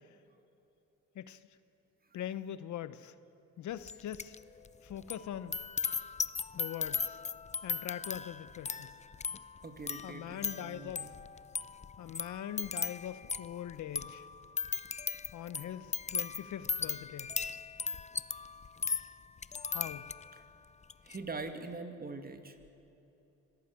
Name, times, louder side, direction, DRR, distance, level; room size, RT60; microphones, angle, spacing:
voice 1, 2.1-3.1 3.6-4.3 4.8-5.6 6.5-7.2 7.6-8.9 10.0-11.0 12.0-14.3 15.3-17.3 19.7-20.1, left 11 dB, 70° left, 14 dB, 1.0 m, -42 dB
sound 1, 3.9-4.4 4.6-20.4 20.8-21.2, left 5 dB, 25° left, 0.6 m, -38 dB
voice 2, 9.6-11.1 21.0-22.6, right 3 dB, 30° right, 7 dB, 2.4 m, -43 dB
25.5 x 18.0 x 8.6 m, 2.9 s
cardioid pair, 90°, 30 cm